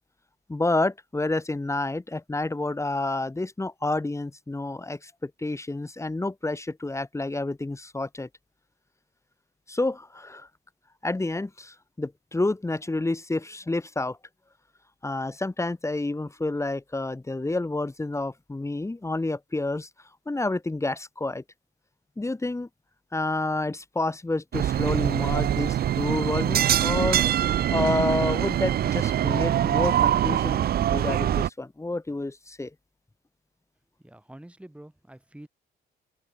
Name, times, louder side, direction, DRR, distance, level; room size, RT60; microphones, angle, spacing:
voice 1, 0.5-8.3 9.7-10.5 11.0-14.2 15.0-19.9 20.2-21.4 22.2-22.7 23.1-27.2 27.7-30.6 30.9-32.7, left 2 dB, 15° left, 1.6 m, -29 dB
sound 1, 24.5-31.5, right 11 dB, 50° right, 0.5 m, -24 dB
voice 2, 34.0-35.5, right 1 dB, 5° right, 3.0 m, -47 dB
open air
cardioid pair, 90°, 20 cm